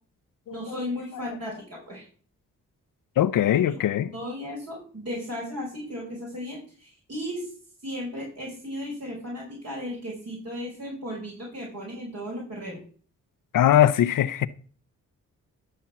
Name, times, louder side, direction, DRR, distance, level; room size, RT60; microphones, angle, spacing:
voice 1, 0.5-2.1 4.0-7.5 7.8-12.8, equal, 50° right, 5.3 m, -35 dB
voice 2, 3.2-4.1 13.5-14.5, left 11 dB, 75° left, 0.7 m, -21 dB
12.5 x 4.4 x 7.2 m
cardioid pair, 75°, 33 cm